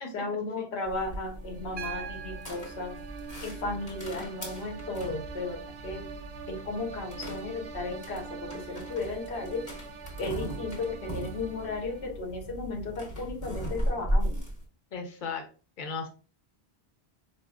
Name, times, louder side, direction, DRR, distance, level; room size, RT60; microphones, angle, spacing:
voice 1, 0.1-3.0 3.4-6.1 6.5-9.7 10.2-14.4, left 3 dB, 80° left, 2 dB, 1.0 m, -35 dB
sound 1, 0.9-14.7, equal, 20° left, 0.9 m, -37 dB
sound 2, 1.3-12.3, right 6 dB, 85° right, 0.8 m, -45 dB
Piano, 1.8-5.8 7.3-7.4, right 6 dB, 45° right, 0.5 m, -45 dB
voice 2, 14.9-15.5 15.8-16.1, left 5 dB, 50° left, 4 dB, 0.8 m, -36 dB
4.1 x 2.4 x 2.3 m, 0.36 s
omnidirectional pair, 1.1 m